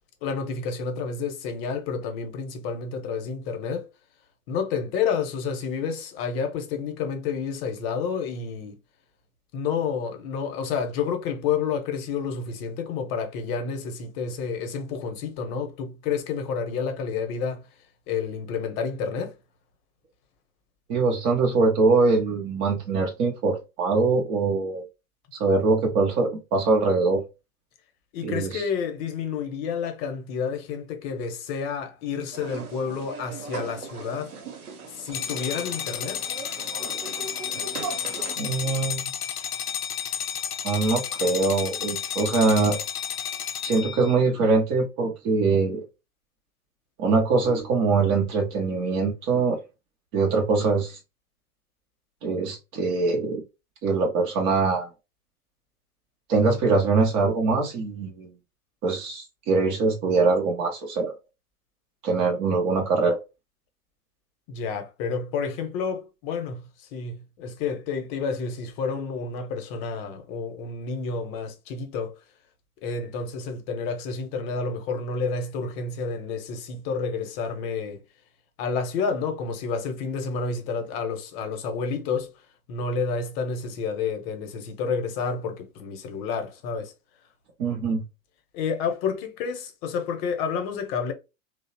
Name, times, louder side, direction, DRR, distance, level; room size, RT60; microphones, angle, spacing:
voice 1, 0.2-3.9 4.5-8.8 9.5-17.6 18.1-19.4 28.1-34.3 34.9-36.2 64.5-72.1 72.8-78.0 78.6-82.3 82.7-86.9 88.5-91.1, left 5 dB, 40° left, 0.8 m, -30 dB
voice 2, 20.9-24.8 25.4-27.2 28.2-28.6 38.4-39.0 40.6-42.8 43.6-45.8 47.0-49.6 50.1-51.0 52.2-53.4 53.8-54.9 56.3-58.3 58.8-61.1 62.0-63.2 87.6-88.0, right 3 dB, 20° right, 0.3 m, -23 dB
sound 1, 32.3-38.4, right 5 dB, 80° right, 0.8 m, -39 dB
sound 2, 35.1-44.2, left 9 dB, 80° left, 0.5 m, -32 dB
2.7 x 2.0 x 2.6 m
hypercardioid pair, 100°, 44 cm